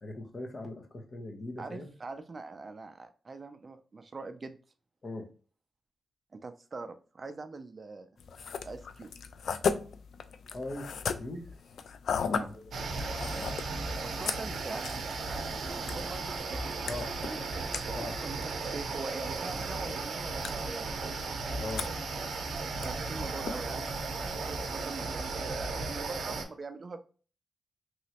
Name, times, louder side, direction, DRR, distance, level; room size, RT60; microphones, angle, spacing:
voice 1, 0.0-1.9 5.0-5.3 10.5-10.9 11.2-11.5 12.5-12.6 16.9-17.1 17.9-18.2 21.6-21.9, left 2 dB, 40° left, 3 dB, 0.8 m, -40 dB
voice 2, 1.6-4.6 6.3-8.1 8.6-9.1 12.3-12.5 14.0-15.5 15.9-17.4 17.9-20.9 22.7-27.0, right 3 dB, 35° right, 9 dB, 0.4 m, -43 dB
sound 1, 8.2-24.8, left 6 dB, 80° left, 0.3 m, -39 dB
sound 2, 12.7-26.4, right 3 dB, 85° right, 0.6 m, -35 dB
sound 3, 15.4-21.9, right 2 dB, 5° right, 0.8 m, -54 dB
3.1 x 3.0 x 2.8 m, 0.39 s
wide cardioid pair, 110°, 0 cm